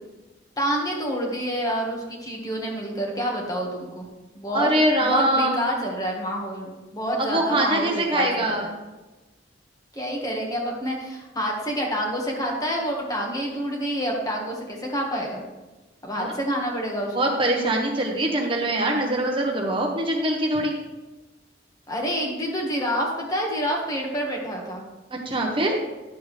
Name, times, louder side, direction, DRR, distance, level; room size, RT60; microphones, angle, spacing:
voice 1, 0.6-4.1 4.3-4.7 5.0-8.6 9.9-15.4 16.0-17.3 21.9-24.8, equal, 20° left, -1 dB, 1.6 m, -28 dB
voice 2, 4.5-5.7 7.2-8.8 16.2-16.3 17.1-20.8 25.2-25.8, right 1 dB, 30° right, 1 dB, 0.9 m, -23 dB
10.5 x 7.0 x 3.3 m, 1.1 s
head